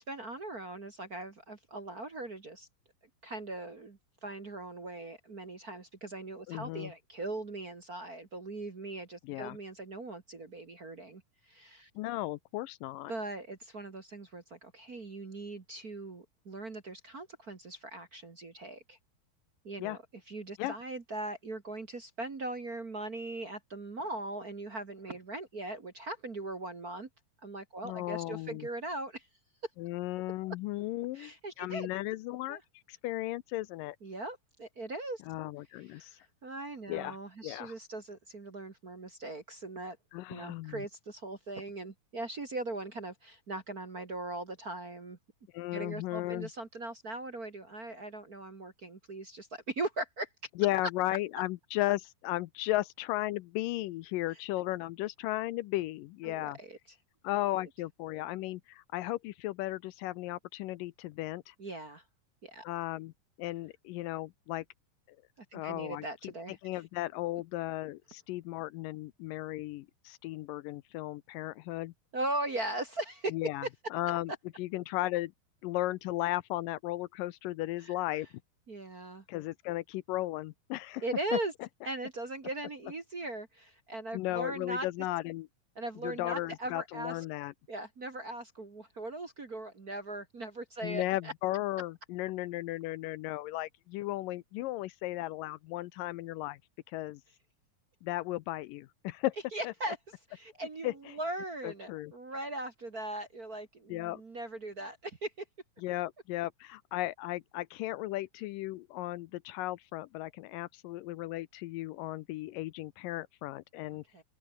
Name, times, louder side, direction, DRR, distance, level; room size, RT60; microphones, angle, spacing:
voice 1, 0.0-2.7 3.2-11.9 13.1-19.0 19.6-27.1 27.4-29.3 31.1-31.9 32.5-32.6 34.0-35.2 35.8-36.2 36.4-40.0 40.3-45.2 45.7-50.3 56.3-56.8 57.5-57.6 61.6-62.0 62.4-62.6 65.4-66.8 72.1-73.3 77.8-78.0 78.7-79.2 81.0-81.5 81.9-84.9 85.8-87.2 87.7-91.3 99.5-100.0 100.3-105.3 114.1-114.2, right 2 dB, 35° right, 1.8 m, -40 dB
voice 2, 6.5-6.9 9.2-9.6 12.0-13.1 19.8-20.0 20.6-20.7 27.8-28.7 29.8-31.3 31.6-32.6 32.9-34.0 35.3-36.1 36.9-37.2 37.4-37.7 40.1-40.9 45.5-46.5 50.6-56.6 57.2-61.6 62.6-63.1 63.4-64.7 65.5-66.3 66.6-71.9 73.3-73.7 73.9-74.3 74.6-75.3 75.6-78.3 79.3-81.0 81.3-81.4 84.1-85.5 86.0-87.5 90.8-96.6 96.9-97.2 98.0-99.3 99.6-99.7 100.8-100.9 101.6-102.1 103.9-104.2 105.8-114.0, left 17 dB, 80° left, 2.3 m, -35 dB
open air
omnidirectional pair, 4.0 m